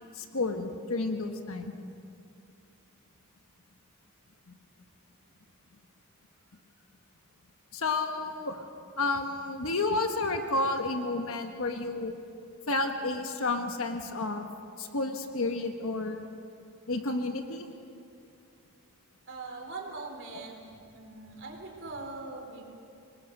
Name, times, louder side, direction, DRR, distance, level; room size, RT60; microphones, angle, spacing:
voice 1, 0.1-1.8 7.7-8.6 9.0-12.1 12.7-14.4 14.8-16.2 16.9-17.7, left 2 dB, 65° left, 5 dB, 1.4 m, -31 dB
voice 2, 19.3-20.6 20.9-22.6, right 3 dB, 55° right, 2 dB, 3.9 m, -41 dB
26.0 x 21.5 x 6.7 m, 2.5 s
head